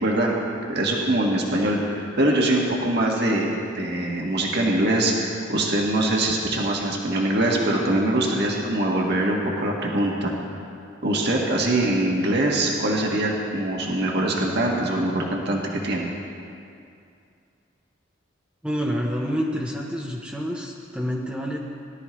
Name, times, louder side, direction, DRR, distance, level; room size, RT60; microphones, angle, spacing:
voice 1, 0.0-0.3 0.7-10.3 11.0-16.1, right 1 dB, 60° right, -2 dB, 1.7 m, -23 dB
voice 2, 18.6-21.6, equal, 5° right, -3 dB, 0.9 m, -28 dB
19.0 x 12.5 x 3.2 m, 2.5 s
head